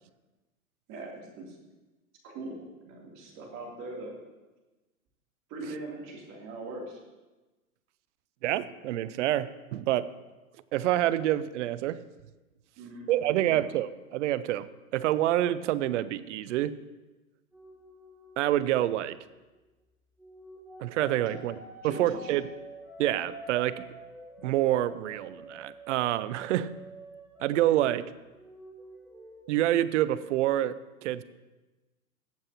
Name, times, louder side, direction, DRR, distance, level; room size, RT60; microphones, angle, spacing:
voice 1, 0.9-1.5 2.2-4.2 5.5-7.0 12.8-13.7 21.2-21.4 21.8-22.4, right 2 dB, 40° right, -2 dB, 3.3 m, -41 dB
voice 2, 8.4-10.1 10.7-12.0 13.1-16.8 18.4-19.2 20.8-21.6 21.8-22.5 23.0-23.9 24.4-26.7 27.4-28.1 29.5-31.2, right 13 dB, 55° right, 15 dB, 0.7 m, -27 dB
sound 1, 17.5-19.6 20.2-27.9 28.2-29.6, right 2 dB, 5° right, 3.9 m, -49 dB
19.5 x 7.6 x 3.0 m, 1.2 s
hypercardioid pair, 100°, 44 cm